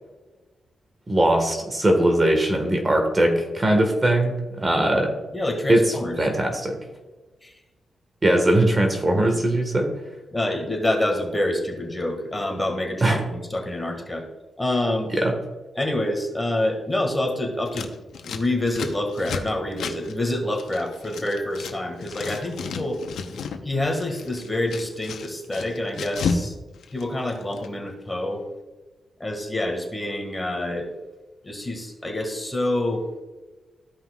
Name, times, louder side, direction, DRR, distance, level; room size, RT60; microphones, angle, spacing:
voice 1, 1.1-5.2 5.7-6.8 8.2-9.9 13.0-13.2 15.1-15.3, right 1 dB, 30° right, 3 dB, 1.5 m, -20 dB
voice 2, 5.3-6.2 7.4-7.6 10.3-14.3 14.6-15.1 15.7-17.9 18.2-23.0 23.6-26.5 26.9-28.4 29.2-30.9 31.4-33.1, left 1 dB, 15° left, 2 dB, 1.7 m, -27 dB
Scissors, 17.7-21.8 22.0-23.6 23.9-26.5 26.7-27.7, left 5 dB, 90° left, 0.8 m, -32 dB
14.5 x 5.5 x 2.4 m, 1.2 s
cardioid pair, 90°, 0 cm